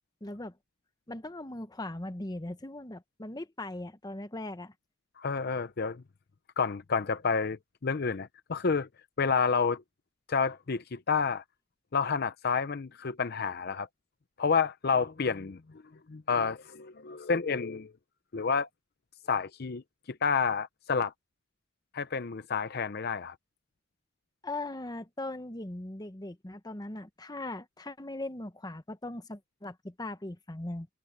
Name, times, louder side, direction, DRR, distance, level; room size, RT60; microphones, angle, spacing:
voice 1, 0.2-0.6 1.1-4.7 24.4-30.9, left 2 dB, 20° left, 1.0 m, -39 dB
voice 2, 5.2-6.0 6.6-8.9 9.2-9.8 10.3-11.4 11.9-13.9 14.4-15.6 16.1-17.9 18.3-18.7 19.3-19.8 20.1-21.1 21.9-23.3, left 5 dB, 50° left, 0.6 m, -29 dB
head